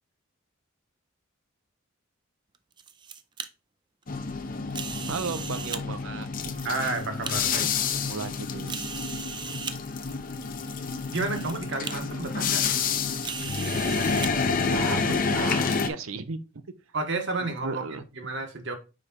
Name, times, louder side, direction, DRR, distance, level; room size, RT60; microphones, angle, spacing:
sound 1, 2.5-3.5 4.7-5.8 6.5-7.3 8.0-8.1 8.7-9.8 10.7-10.8 11.1-11.5 11.8-11.9 13.2-14.3, right 7 dB, 20° right, 0.4 m, -37 dB
sound 2, 4.1-15.9, left 5 dB, 40° left, 0.6 m, -29 dB
voice 1, 5.1-6.3 8.0-8.8 14.7-16.4 17.4-18.0, right 4 dB, 75° right, 0.6 m, -35 dB
voice 2, 6.6-7.7 11.1-12.8 16.9-18.7, right 3 dB, 55° right, 1.3 m, -31 dB
5.1 x 4.9 x 4.1 m
head